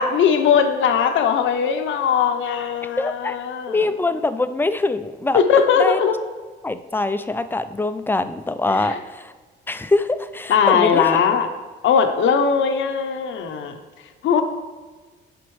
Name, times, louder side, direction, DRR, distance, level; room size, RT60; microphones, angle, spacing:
voice 1, 0.0-3.8 5.3-6.1 8.7-9.0 10.5-11.5 11.8-13.7 14.2-14.4, left 7 dB, 75° left, 7 dB, 0.7 m, -19 dB
voice 2, 3.0-3.4 3.7-5.4 5.8-6.0 6.6-9.3 9.7-11.1, left 2 dB, 10° left, 11 dB, 0.3 m, -23 dB
7.8 x 5.1 x 3.1 m, 1.4 s
cardioid pair, 90°, 20 cm